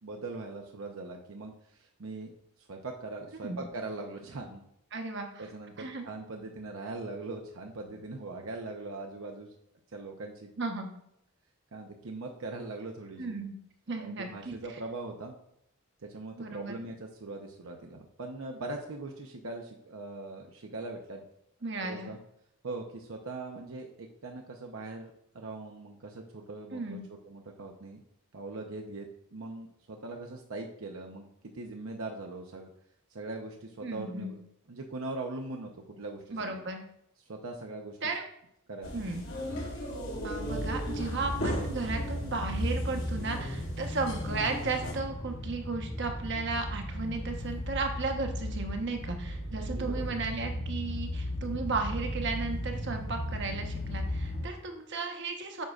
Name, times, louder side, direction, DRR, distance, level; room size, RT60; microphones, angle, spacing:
voice 1, 0.0-4.6 5.4-9.5 9.9-10.5 11.7-13.3 14.0-15.3 16.0-21.2 21.8-22.2 22.6-27.0 27.3-28.0 28.3-31.2 31.5-32.7 33.1-34.3 34.7-36.6 37.2-38.0 38.7-39.0 49.5-50.2, right 2 dB, 75° right, 2 dB, 0.8 m, -41 dB
voice 2, 4.9-5.4 5.8-6.0 10.6-10.9 13.2-13.6 13.9-14.5 16.4-16.8 21.6-22.1 26.7-27.1 33.8-34.3 36.3-36.8 38.0-38.2 38.9-39.2 40.2-55.6, right 3 dB, 55° right, 4 dB, 1.1 m, -35 dB
sound 1, 38.8-44.9, equal, 75° left, 2.7 m, -37 dB
sound 2, 40.4-54.5, equal, 55° left, 2.0 m, -36 dB
9.3 x 6.4 x 2.4 m, 0.75 s
head